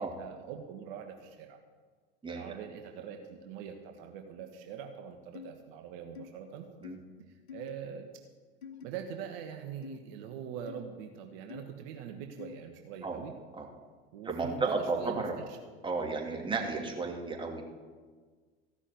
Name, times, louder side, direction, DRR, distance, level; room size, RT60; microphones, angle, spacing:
voice 1, 0.0-1.6 2.3-6.7 7.5-8.1 8.8-13.3 14.1-15.2, right 8 dB, 60° right, 4 dB, 1.4 m, -43 dB
sound 1, 5.3-5.5 6.1-6.3 6.8-7.0 7.5-7.7 8.6-8.9 9.8-10.0 10.7-10.8 11.5-11.6 12.4-12.6, left 7 dB, 80° left, 1.2 m, -45 dB
voice 2, 14.2-15.4 15.8-17.6, right 3 dB, 15° right, 0 dB, 2.8 m, -33 dB
15.5 x 6.2 x 9.4 m, 1.5 s
hypercardioid pair, 85°, 32 cm